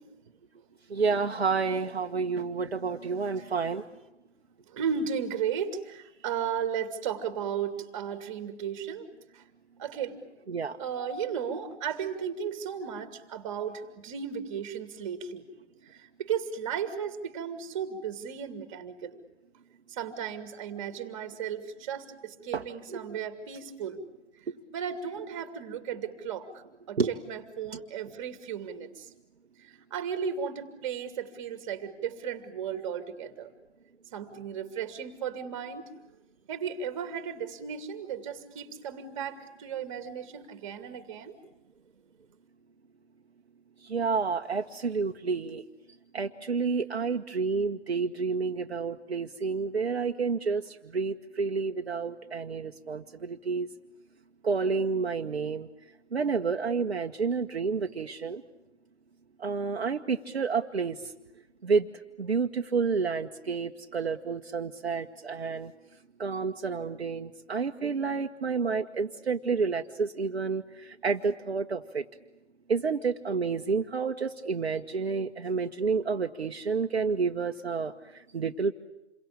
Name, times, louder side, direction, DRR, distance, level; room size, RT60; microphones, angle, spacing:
voice 1, 0.9-3.8 10.5-10.8 22.5-22.6 22.9-23.1 27.0-27.1 43.8-45.6 46.1-53.7 54.4-55.7 56.1-58.4 59.4-61.1 61.6-61.9 62.2-65.7 66.2-72.0 72.7-78.7, right 5 dB, 60° right, 5 dB, 1.4 m, -29 dB
voice 2, 4.7-9.1 9.3-9.4 9.8-10.2 10.8-15.5 15.9-19.2 19.9-24.0 24.7-26.5 26.9-27.0 27.3-29.1 29.6-33.5 34.1-35.9 36.5-41.4, right 7 dB, 25° right, 11 dB, 2.6 m, -35 dB
28.5 x 23.0 x 8.7 m, 0.95 s
figure-of-eight pair, 140°, 35 cm